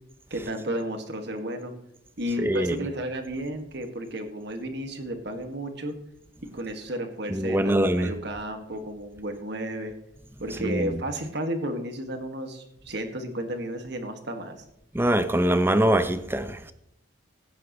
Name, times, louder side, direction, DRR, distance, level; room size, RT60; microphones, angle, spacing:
voice 1, 0.3-1.7 2.2-5.9 6.5-9.9 10.4-14.6, right 1 dB, 55° right, 1.9 m, -33 dB
voice 2, 2.4-2.8 7.3-8.1 10.6-10.9 14.9-16.7, right 1 dB, 10° right, 0.6 m, -23 dB
16.5 x 9.4 x 3.1 m
head